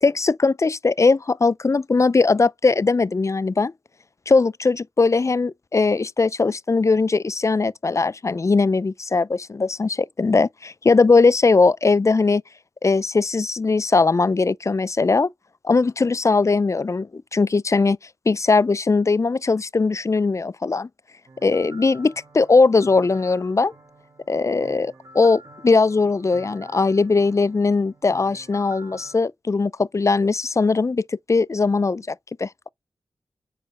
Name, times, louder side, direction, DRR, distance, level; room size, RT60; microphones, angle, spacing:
voice 1, 0.0-3.7 4.3-12.4 12.8-15.3 15.7-18.0 18.3-20.9 21.4-23.7 24.3-32.7, left 4 dB, 35° left, 0.4 m, -20 dB
sound 1, 21.3-29.2, right 1 dB, 45° right, 3.8 m, -48 dB
10.0 x 4.4 x 4.2 m
cardioid pair, 55°, 9 cm